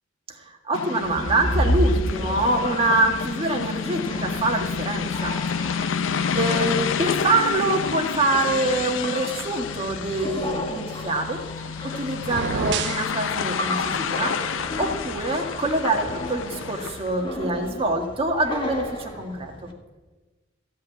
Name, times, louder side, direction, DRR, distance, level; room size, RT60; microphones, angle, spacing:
voice 1, 0.3-5.8 6.3-11.4 11.8-14.3 14.8-19.7, right 2 dB, 30° right, 2 dB, 1.7 m, -25 dB
sound 1, 0.7-17.2, left 6 dB, 80° left, 0.5 m, -29 dB
sound 2, 1.0-19.7, equal, 25° left, 1.5 m, -32 dB
sound 3, 12.2-13.1, right 7 dB, 60° right, 0.4 m, -27 dB
15.0 x 5.6 x 9.1 m, 1.2 s
head